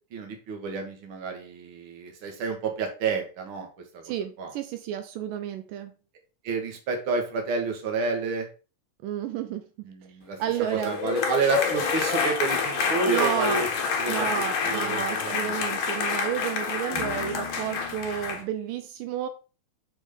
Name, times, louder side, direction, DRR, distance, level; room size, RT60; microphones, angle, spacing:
voice 1, 0.1-3.7 3.9-4.0 4.4-4.5 6.4-8.5 9.8-10.4 10.7-13.7 14.0-15.5, right 4 dB, 45° right, 3 dB, 2.0 m, -29 dB
voice 2, 4.0-5.9 9.0-9.9 10.4-11.0 13.0-13.7 14.1-19.3, right 10 dB, 80° right, 8 dB, 2.3 m, -31 dB
sound 1, 10.5-18.4, left 6 dB, 60° left, 1.3 m, -28 dB
6.3 x 4.8 x 5.1 m, 0.34 s
omnidirectional pair, 3.9 m